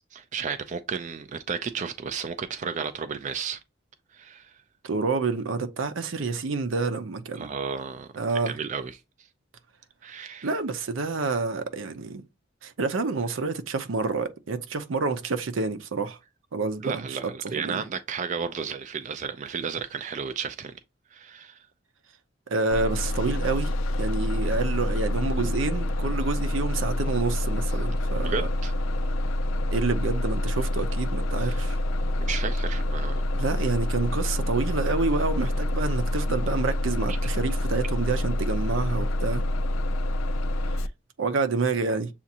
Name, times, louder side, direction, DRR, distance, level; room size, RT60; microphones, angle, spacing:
voice 1, 0.1-3.6 4.1-4.5 7.4-9.0 10.0-10.5 16.8-20.8 21.1-21.6 28.2-28.7 31.4-31.7 32.3-33.3 37.1-37.2, right 6 dB, 40° right, 0.3 m, -33 dB
voice 2, 4.8-7.5 8.2-8.5 10.4-12.2 12.6-16.2 16.5-17.2 17.6-17.8 22.5-23.7 24.0-28.5 29.7-31.8 33.3-39.4 41.2-42.1, right 3 dB, 75° right, 0.6 m, -28 dB
Bus, 22.7-40.9, left 1 dB, 85° left, 0.4 m, -27 dB
7.1 x 2.5 x 2.8 m
head